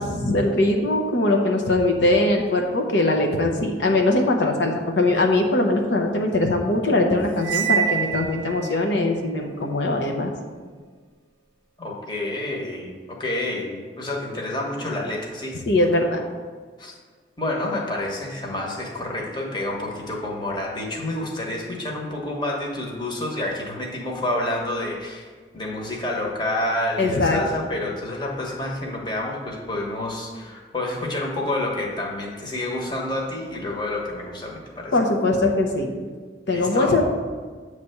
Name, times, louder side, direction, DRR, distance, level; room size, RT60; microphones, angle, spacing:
voice 1, 0.0-10.3 15.7-16.2 27.0-27.4 34.9-35.9 36.5-37.0, left 2 dB, 80° left, 2 dB, 0.8 m, -21 dB
Cymbal, 7.4-8.8, right 8 dB, 75° right, 0.5 m, -25 dB
voice 2, 11.8-15.6 16.0-16.1 16.8-16.9 17.4-25.3 25.5-35.0 36.5-37.0, left 1 dB, 25° left, -2 dB, 1.1 m, -29 dB
8.3 x 3.3 x 6.6 m, 1.5 s
head